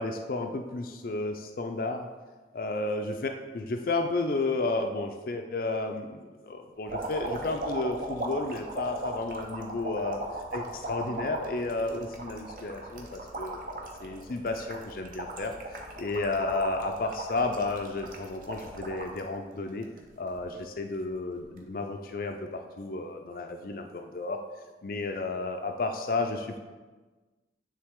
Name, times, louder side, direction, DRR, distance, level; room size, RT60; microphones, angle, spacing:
voice 1, 0.0-2.1 2.5-10.2 10.5-19.9 20.2-24.4 24.8-26.6, left 3 dB, 50° left, 5 dB, 0.4 m, -32 dB
sound 1, 6.9-19.2 19.7-20.4 21.4-21.6, right 2 dB, 45° right, 0.8 m, -38 dB
9.8 x 3.4 x 3.6 m, 1.3 s
head